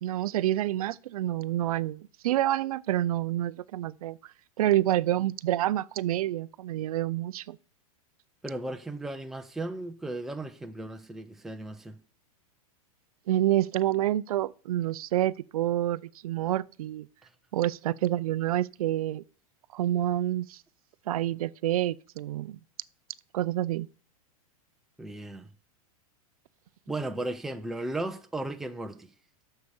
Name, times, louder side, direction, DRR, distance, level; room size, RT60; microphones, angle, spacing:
voice 1, 0.0-4.2 4.6-7.6 13.3-17.1 17.5-19.2 19.7-20.6 21.1-22.6 23.3-23.9, right 13 dB, 75° right, 0.5 m, -28 dB
voice 2, 8.4-12.0 25.0-25.5 26.9-29.1, right 2 dB, ahead, 0.6 m, -35 dB
8.0 x 6.6 x 7.0 m
supercardioid pair, 155°, 19 cm